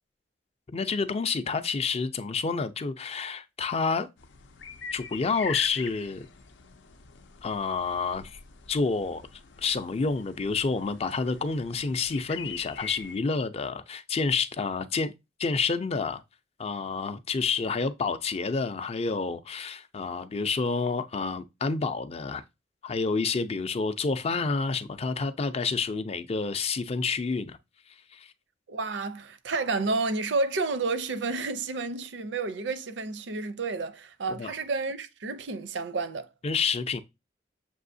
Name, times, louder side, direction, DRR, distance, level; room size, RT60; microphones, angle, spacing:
voice 1, 0.7-4.1 4.9-6.3 7.4-8.4 8.7-9.2 9.6-15.1 15.4-16.2 16.6-22.4 22.8-27.6 28.1-28.3 34.4-34.5 36.4-37.0, left 4 dB, 35° left, 0.4 m, -29 dB
sound 1, 4.2-13.2, left 7 dB, 85° left, 0.5 m, -43 dB
voice 2, 28.7-36.3, right 3 dB, 75° right, 0.5 m, -30 dB
6.8 x 2.7 x 2.6 m
head